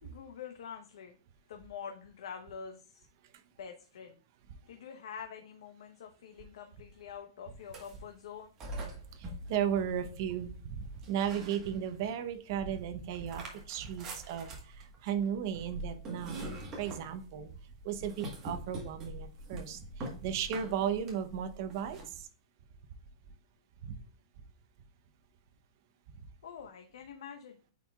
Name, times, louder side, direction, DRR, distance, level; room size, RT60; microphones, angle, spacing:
voice 1, 0.0-1.1 1.5-3.0 3.6-4.2 4.7-8.5 26.4-27.6, left 7 dB, 65° left, 4 dB, 0.8 m, -46 dB
sound 1, 7.6-8.1 8.6-10.5 11.0-12.1 12.5-22.1, right 1 dB, 20° right, 1.3 m, -44 dB
voice 2, 9.1-16.4 16.8-17.5 17.8-22.3 23.8-24.0, right 9 dB, 35° right, 9 dB, 0.7 m, -35 dB
9.1 x 4.5 x 2.3 m, 0.40 s
supercardioid pair, 175°, 3 cm